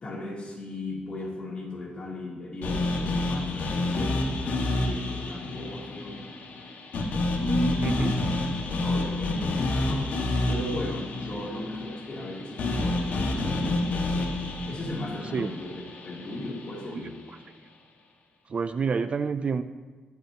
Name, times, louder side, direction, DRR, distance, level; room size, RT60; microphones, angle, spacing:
voice 1, 0.0-6.4 7.3-8.0 8.8-10.1 10.5-14.4 14.6-17.2, left 1 dB, 35° left, -3 dB, 3.1 m, -36 dB
sound 1, 2.6-16.8, left 2 dB, 75° left, 1.8 m, -29 dB
voice 2, 18.5-19.6, right 5 dB, 40° right, 11 dB, 0.4 m, -27 dB
21.5 x 8.2 x 2.9 m, 1.4 s
wide cardioid pair, 145°, 3 cm